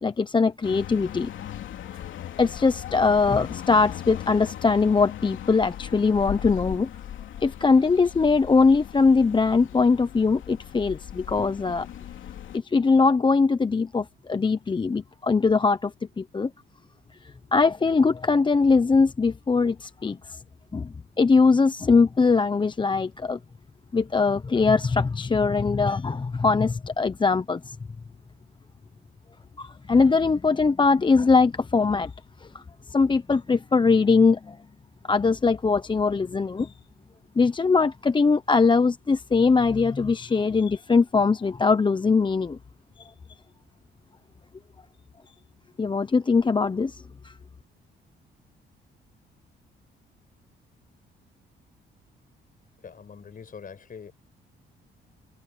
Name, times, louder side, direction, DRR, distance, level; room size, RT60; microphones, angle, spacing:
voice 1, 0.0-1.3 1.9-2.0 2.4-6.9 7.4-11.9 12.5-15.9 16.2-16.5 17.5-20.4 20.7-23.4 23.9-27.8 29.6-32.1 32.4-32.6 32.9-34.6 35.1-36.7 37.4-42.6 43.0-43.1 45.8-47.3, left 4 dB, 25° left, 0.8 m, -21 dB
sound 1, 0.6-12.6, left 11 dB, 75° left, 3.0 m, -38 dB
voice 2, 52.8-54.1, left 6 dB, 45° left, 6.4 m, -43 dB
cardioid pair, 90°, 20 cm